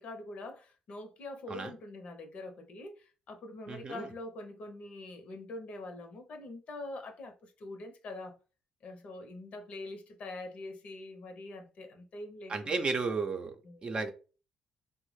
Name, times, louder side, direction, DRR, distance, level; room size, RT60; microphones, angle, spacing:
voice 1, 0.0-8.4 8.8-13.0 13.6-13.9, left 2 dB, 60° left, 0.7 m, -44 dB
voice 2, 3.7-4.1 12.5-13.5 13.8-14.1, right 4 dB, 40° right, 0.6 m, -33 dB
3.2 x 2.0 x 3.1 m
supercardioid pair, 60°, 2 cm